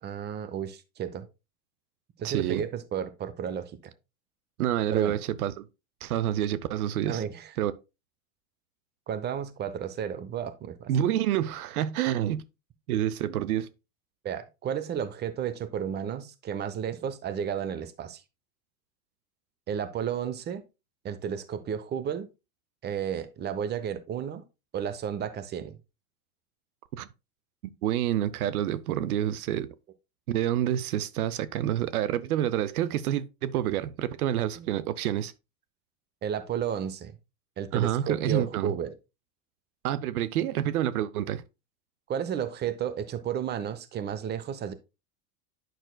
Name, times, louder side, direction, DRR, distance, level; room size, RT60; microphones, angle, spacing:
voice 1, 0.0-1.3 2.2-3.7 4.9-5.2 7.0-7.5 9.1-10.9 14.2-18.2 19.7-20.6 21.0-22.3 22.8-24.4 24.7-25.7 34.6-34.7 36.2-37.1 37.6-38.9 42.1-44.7, right 8 dB, 25° right, 0.7 m, -32 dB
voice 2, 2.2-2.6 4.6-5.6 6.0-7.2 7.6-7.7 10.9-12.4 12.9-13.7 26.9-27.1 27.8-29.7 30.3-35.3 37.7-38.7 39.8-41.4, right 11 dB, 85° right, 0.7 m, -28 dB
9.3 x 5.9 x 2.2 m
supercardioid pair, 120°, 43 cm